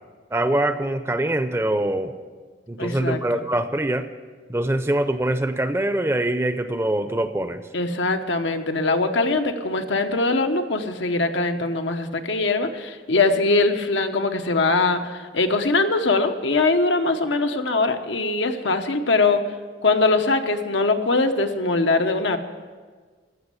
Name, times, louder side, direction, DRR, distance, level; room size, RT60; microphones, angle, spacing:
voice 1, 0.3-2.1 2.7-4.1 4.5-7.6, right 1 dB, 15° right, 10 dB, 0.6 m, -23 dB
voice 2, 2.8-3.4 7.7-19.4 19.8-22.4, left 3 dB, 90° left, 6 dB, 1.1 m, -22 dB
15.0 x 6.3 x 9.8 m, 1.5 s
head